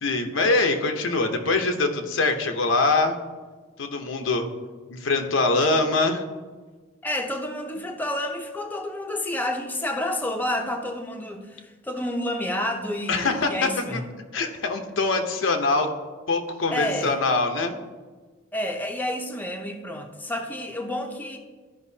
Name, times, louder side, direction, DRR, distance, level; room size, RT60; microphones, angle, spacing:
voice 1, 0.0-3.2 3.8-4.5 4.9-6.2 13.1-13.5 13.9-14.0 14.3-15.9 16.3-17.7, left 3 dB, 85° left, 5 dB, 0.8 m, -23 dB
voice 2, 7.0-14.0 16.7-17.2 18.5-21.4, left 1 dB, 10° left, 3 dB, 0.6 m, -29 dB
13.0 x 5.3 x 2.7 m, 1.4 s
head